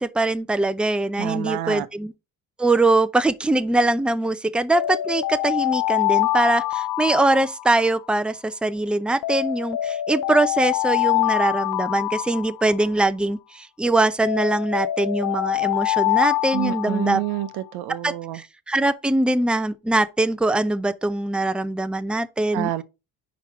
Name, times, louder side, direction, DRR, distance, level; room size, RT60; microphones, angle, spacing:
voice 1, 0.0-2.1 2.6-17.2 18.0-22.7, right 2 dB, 5° right, 0.6 m, -22 dB
voice 2, 1.2-1.9 16.5-18.4 22.5-22.8, right 14 dB, 80° right, 0.8 m, -28 dB
Alarm, 4.7-8.1 9.2-13.1 14.2-17.5, left 17 dB, 60° left, 0.6 m, -25 dB
5.1 x 4.5 x 5.7 m
supercardioid pair, 80°, 38 cm